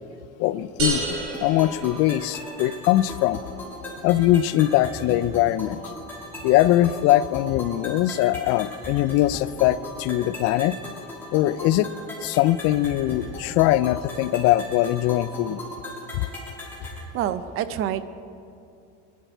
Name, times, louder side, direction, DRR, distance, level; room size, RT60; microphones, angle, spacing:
voice 1, 0.4-1.0 1.4-3.4 4.0-5.8 6.4-10.7 11.3-11.9 12.2-15.6 16.1-16.2, left 14 dB, 55° left, 17 dB, 0.4 m, -21 dB
sound 1, 0.8-2.6, right 2 dB, 80° right, 3.3 m, -30 dB
sound 2, 1.1-17.1, left 1 dB, 5° left, 2.9 m, -38 dB
voice 2, 17.1-18.0, right 10 dB, 50° right, 13 dB, 0.6 m, -27 dB
20.0 x 10.5 x 4.5 m, 2.6 s
cardioid pair, 135°, 29 cm